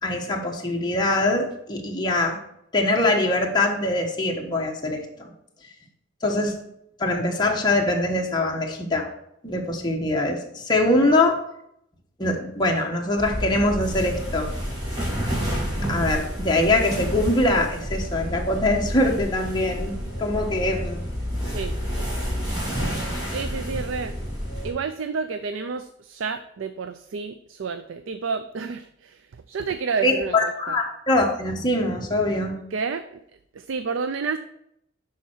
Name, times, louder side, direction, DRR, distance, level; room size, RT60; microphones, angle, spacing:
voice 1, 0.0-2.4 2.7-5.3 6.2-6.5 7.0-9.1 9.4-11.4 12.2-14.5 15.9-19.9 20.2-21.0 30.0-32.5, left 2 dB, 20° left, 0 dB, 1.2 m, -23 dB
sound 1, 13.2-24.7, equal, 20° right, 3.0 m, -29 dB
voice 2, 23.3-24.2 24.6-30.8 32.7-33.2 33.5-34.4, right 5 dB, 75° right, 10 dB, 0.4 m, -30 dB
11.0 x 4.4 x 4.5 m, 0.77 s
head